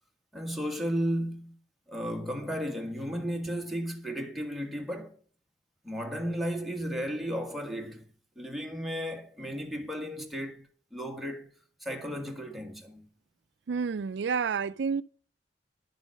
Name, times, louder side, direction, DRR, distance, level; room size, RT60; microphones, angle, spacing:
voice 1, 0.3-1.6 1.9-5.2 5.8-8.0 8.3-11.5 11.8-13.1, equal, ahead, 1.6 m, -34 dB
voice 2, 13.7-15.0, right 5 dB, 75° right, 0.4 m, -29 dB
11.0 x 7.2 x 6.3 m
head